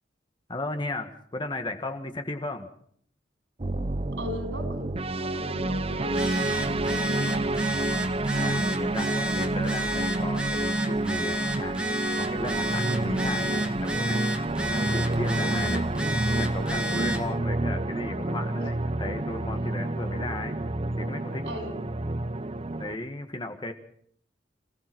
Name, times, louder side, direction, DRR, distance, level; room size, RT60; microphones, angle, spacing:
voice 1, 0.5-2.7 8.3-11.8 12.2-14.2 14.7-15.8 16.3-20.6 21.0-21.6 22.8-23.7, left 2 dB, 25° left, 6 dB, 1.6 m, -35 dB
sound 1, 3.6-23.0, right 2 dB, 35° right, 0.8 m, -29 dB
voice 2, 4.2-7.6 15.4-15.7 21.4-21.8, equal, 80° right, 6 dB, 6.5 m, -39 dB
Telephone, 6.0-17.3, equal, 5° right, 1.8 m, -32 dB
27.0 x 16.5 x 6.1 m, 0.63 s
head